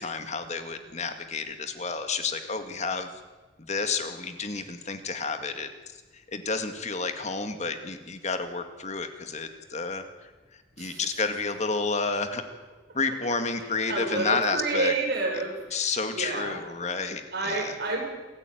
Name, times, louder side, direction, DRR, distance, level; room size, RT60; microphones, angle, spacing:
voice 1, 0.0-3.1 3.7-5.7 6.3-10.0 10.8-12.4 12.9-14.9 15.7-17.7, left 4 dB, 40° left, 7 dB, 2.0 m, -30 dB
voice 2, 13.9-15.8 16.1-16.6 17.3-18.0, right 3 dB, 60° right, 0 dB, 7.6 m, -29 dB
28.0 x 15.0 x 9.3 m, 1.2 s
head